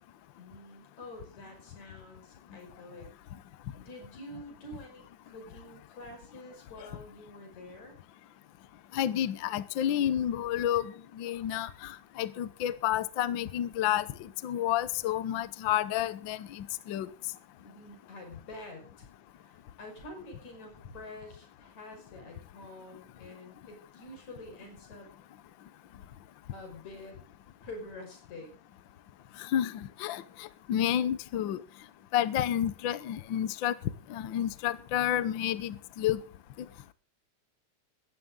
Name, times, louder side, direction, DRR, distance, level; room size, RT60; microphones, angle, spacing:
voice 1, 0.4-3.1 3.8-8.0 17.6-19.1 19.4-25.1 26.5-27.2 27.6-28.5, left 1 dB, 65° left, 4 dB, 6.9 m, -47 dB
voice 2, 8.9-17.1 29.4-31.6 32.1-33.7 34.1-36.2, left 11 dB, 80° left, 16 dB, 1.0 m, -30 dB
17.0 x 13.5 x 3.9 m, 0.36 s
omnidirectional pair, 3.5 m